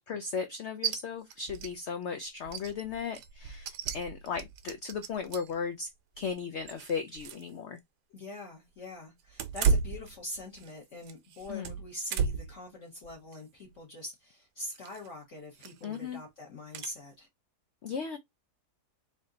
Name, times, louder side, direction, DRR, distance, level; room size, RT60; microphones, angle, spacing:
voice 1, 0.1-5.9 6.2-7.8 11.5-11.7 15.8-16.2 17.8-18.2, left 6 dB, 85° left, 0.6 m, -36 dB
sound 1, 0.8-1.0 1.3-1.7 2.0-2.1 2.5-5.6 6.2-7.5 7.8-7.9 9.3-10.7 11.0-12.6 13.0-13.4 14.7-15.1 15.6-16.0 16.7-16.9, right 6 dB, 80° right, 1.2 m, -33 dB
voice 2, 8.1-17.3, left 1 dB, 50° left, 1.4 m, -44 dB
3.5 x 2.7 x 3.7 m
omnidirectional pair, 1.8 m